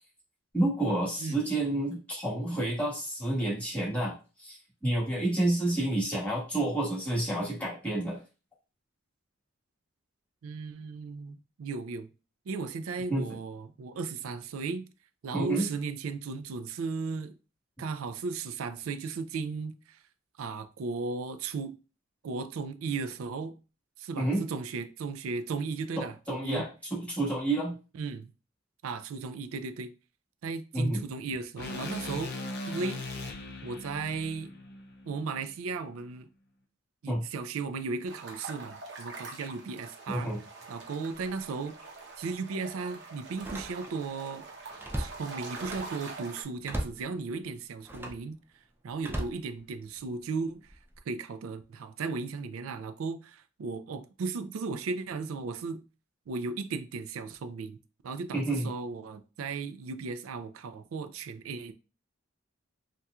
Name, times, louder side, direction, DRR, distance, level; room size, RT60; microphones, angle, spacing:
voice 1, 0.5-8.2 13.1-13.2 15.3-15.7 24.2-24.4 26.0-27.7 30.7-31.0 37.1-37.2 40.1-40.4 58.3-58.7, right 1 dB, 5° left, 1.4 m, -29 dB
voice 2, 10.4-12.1 12.5-14.9 15.2-17.3 17.8-20.0 20.4-21.7 22.2-23.5 24.0-26.7 28.0-28.3 28.8-29.9 30.4-32.3 32.7-33.0 33.6-34.5 35.1-36.3 37.0-40.3 40.7-41.8 42.2-44.5 45.0-48.4 48.8-50.8 51.1-55.8 56.3-57.8 58.0-61.7, right 4 dB, 75° right, 0.4 m, -36 dB
sound 1, 31.6-35.8, left 2 dB, 55° left, 0.5 m, -39 dB
sound 2, 38.0-46.4, right 3 dB, 60° right, 0.8 m, -44 dB
Slam, 41.2-41.4 41.9-42.0 43.3-44.1 44.4-46.0 46.6-47.1 47.8-48.3 49.0-50.1 50.7-51.0, right 1 dB, 10° right, 0.4 m, -38 dB
4.1 x 2.3 x 2.3 m
head